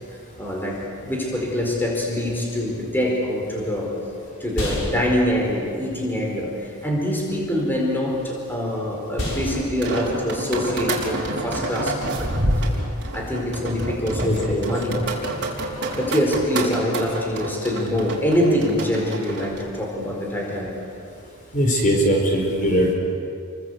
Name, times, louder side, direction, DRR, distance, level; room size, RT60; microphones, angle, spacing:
voice 1, 0.4-3.9 4.4-12.3 13.1-15.1 15.9-20.7, left 1 dB, 10° left, -2 dB, 4.8 m, -24 dB
sound 1, 4.5-12.8, left 1 dB, 65° left, 6.8 m, -35 dB
sound 2, 9.5-19.6, right 1 dB, 55° right, 4.9 m, -27 dB
voice 2, 14.2-14.6 21.5-22.9, equal, 35° left, 0 dB, 4.6 m, -20 dB
29.5 x 24.5 x 8.1 m, 2.5 s
head